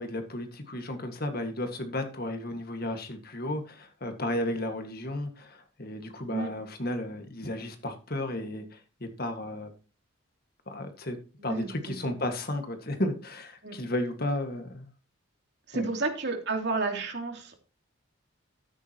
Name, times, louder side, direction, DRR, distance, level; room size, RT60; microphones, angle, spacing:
voice 1, 0.0-9.7 10.7-14.9 15.7-15.9, left 1 dB, 45° left, 6 dB, 1.9 m, -33 dB
voice 2, 15.7-17.6, right 3 dB, 55° right, 3 dB, 3.1 m, -31 dB
13.5 x 9.7 x 3.0 m, 0.35 s
head